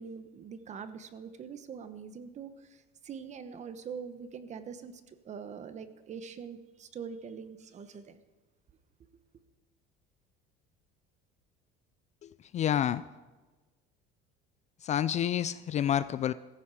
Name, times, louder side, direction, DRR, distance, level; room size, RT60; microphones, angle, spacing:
voice 1, 0.0-8.2, right 6 dB, 35° right, 11 dB, 1.2 m, -43 dB
voice 2, 12.2-13.0 14.8-16.3, left 10 dB, 35° left, 16 dB, 0.4 m, -29 dB
16.5 x 14.5 x 4.9 m, 1.2 s
cardioid pair, 145°, 21 cm